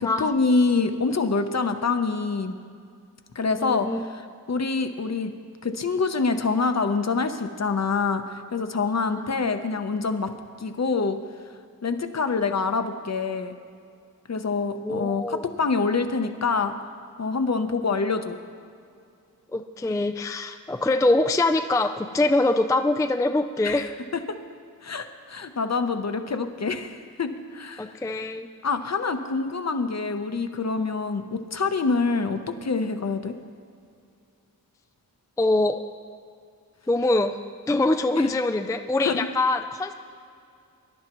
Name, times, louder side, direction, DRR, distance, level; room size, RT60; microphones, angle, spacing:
voice 1, 0.0-2.5 3.4-3.9 4.5-5.3 5.6-10.3 10.6-11.2 11.8-13.5 14.3-16.7 17.2-18.4 23.6-23.9 24.3-24.4 24.8-27.9 28.6-33.3 38.2-38.3 39.0-39.3, left 4 dB, 45° left, 8 dB, 0.8 m, -26 dB
voice 2, 3.6-4.0 9.1-9.2 14.8-15.5 19.5-23.9 27.8-28.5 35.4-35.8 36.9-37.3 37.7-39.9, left 2 dB, 10° left, 7 dB, 0.3 m, -23 dB
22.5 x 11.0 x 3.0 m, 2.4 s
wide cardioid pair, 100°, 36 cm